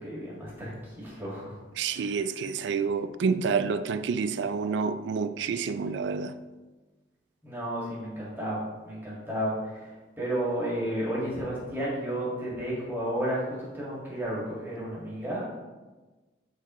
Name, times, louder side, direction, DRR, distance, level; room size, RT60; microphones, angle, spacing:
voice 1, 0.0-1.5 1.9-2.4 7.4-9.9 10.2-15.4, right 1 dB, 10° right, 1.8 m, -32 dB
voice 2, 1.8-6.4, right 5 dB, 70° right, 0.3 m, -28 dB
7.7 x 4.1 x 3.0 m
head